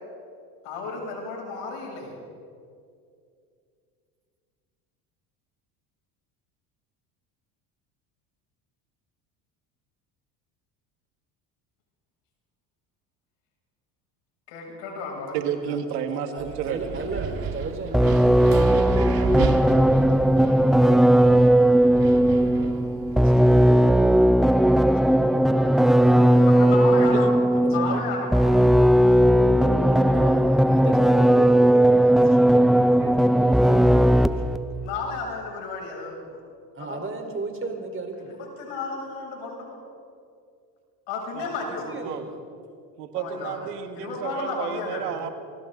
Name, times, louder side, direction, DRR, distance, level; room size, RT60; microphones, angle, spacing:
voice 1, 0.6-2.1 14.5-15.4 26.5-27.3 27.7-28.3 34.8-36.4 36.8-37.1 38.6-39.8 41.1-41.9 43.1-43.6 44.0-45.2, left 4 dB, 70° left, -1 dB, 7.5 m, -33 dB
voice 2, 15.3-16.3 16.6-16.9 27.0-27.3 41.3-41.5 42.0-42.2 43.0-45.3, right 8 dB, 90° right, 7 dB, 1.9 m, -31 dB
voice 3, 16.1-20.9 21.9-26.8 27.5-28.0 30.1-34.7 36.7-38.4 41.7-42.4, right 3 dB, 25° right, 3 dB, 4.5 m, -37 dB
Wind, 16.4-23.2, right 6 dB, 50° right, 2.0 m, -33 dB
sound 1, 17.9-34.6, right 1 dB, ahead, 0.5 m, -18 dB
28.5 x 24.0 x 4.0 m, 2.4 s
supercardioid pair, 80°, 46 cm